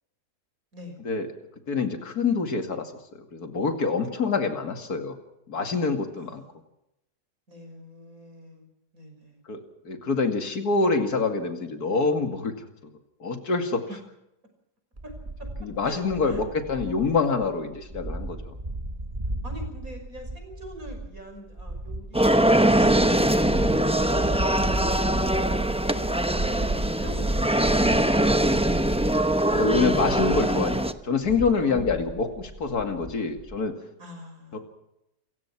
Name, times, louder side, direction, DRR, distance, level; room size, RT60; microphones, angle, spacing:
voice 1, 1.7-5.2 5.5-6.4 9.5-12.5 13.2-13.9 15.6-18.6 29.5-33.7 34.5-34.6, left 4 dB, 70° left, 6 dB, 2.9 m, -26 dB
voice 2, 6.2-6.6 7.5-9.4 13.9-14.0 15.0-15.1 15.4-15.5 15.8-16.5 19.4-26.1 26.5-27.5 31.7-32.4 34.0-34.6, equal, 60° right, 4 dB, 6.3 m, -44 dB
sound 1, 15.0-33.6, right 2 dB, 25° right, 2.0 m, -34 dB
sound 2, 22.1-30.9, right 1 dB, 5° right, 0.7 m, -22 dB
28.5 x 16.0 x 6.0 m, 0.84 s
omnidirectional pair, 1.7 m